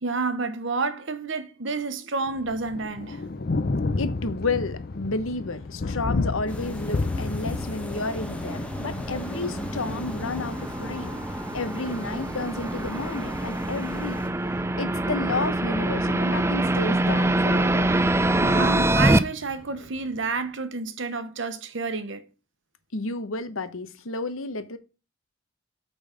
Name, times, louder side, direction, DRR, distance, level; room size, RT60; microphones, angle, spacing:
voice 1, 0.0-3.2 18.4-22.2, right 4 dB, 60° right, 0.9 m, -29 dB
Thunder, 2.3-20.2, left 3 dB, 45° left, 0.5 m, -34 dB
voice 2, 4.0-11.2 11.5-17.9 22.9-24.8, left 3 dB, 75° left, 1.0 m, -31 dB
sound 1, 6.5-14.3, equal, 5° left, 1.0 m, -37 dB
sound 2, 7.7-19.2, right 1 dB, 10° right, 0.3 m, -25 dB
8.7 x 3.9 x 6.4 m
head